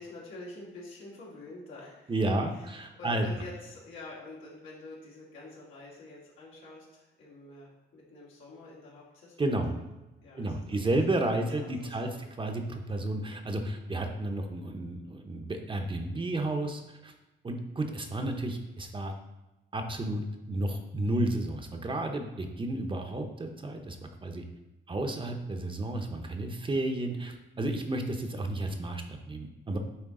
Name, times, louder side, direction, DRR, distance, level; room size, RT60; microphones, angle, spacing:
voice 1, 0.0-2.7 3.0-9.9 10.2-11.0 11.3-12.2, left 2 dB, 90° left, -5 dB, 2.2 m, -47 dB
voice 2, 2.1-3.3 9.4-9.7 10.4-12.1 12.4-17.1 17.4-19.1 19.7-24.4 24.9-29.8, right 1 dB, 25° right, 4 dB, 0.8 m, -32 dB
8.8 x 3.2 x 3.7 m, 1.0 s
cardioid pair, 90°, 20 cm